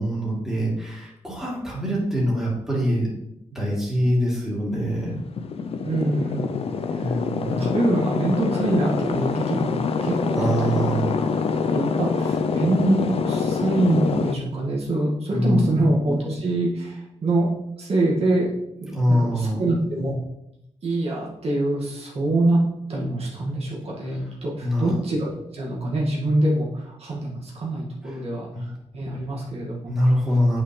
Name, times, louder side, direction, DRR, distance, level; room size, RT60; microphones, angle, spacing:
voice 1, 0.0-3.1 3.5-5.2 7.0-7.7 10.4-11.1 15.3-15.9 18.9-19.7 24.1-24.2 24.6-24.9 28.0-28.2 28.5-28.7 29.9-30.6, equal, 5° right, -6 dB, 2.8 m, -24 dB
sound 1, 4.9-14.3, left 5 dB, 55° left, 0.5 m, -25 dB
voice 2, 5.8-6.5 6.9-10.9 11.7-17.5 17.8-18.5 18.8-20.1 20.8-22.6 22.9-25.3 25.5-28.7 28.9-29.9, right 1 dB, 55° right, -4 dB, 1.9 m, -25 dB
8.2 x 5.7 x 3.2 m, 0.84 s
wide cardioid pair, 115°, 12 cm